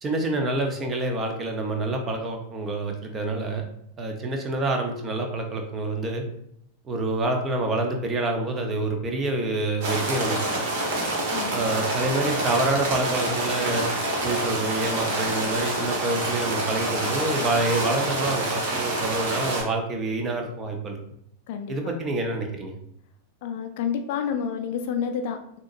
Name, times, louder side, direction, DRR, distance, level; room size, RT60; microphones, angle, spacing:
voice 1, 0.0-3.6 4.0-6.2 6.9-10.6 11.5-13.9 14.2-21.0 21.7-22.8, right 2 dB, 25° right, 3 dB, 0.9 m, -27 dB
sound 1, 9.8-19.6, right 1 dB, 45° right, 1.4 m, -27 dB
voice 2, 11.3-11.6 21.5-21.9 23.4-25.6, left 7 dB, 50° left, 7 dB, 0.4 m, -29 dB
6.1 x 3.0 x 2.6 m, 0.71 s
figure-of-eight pair, 90°, 0 cm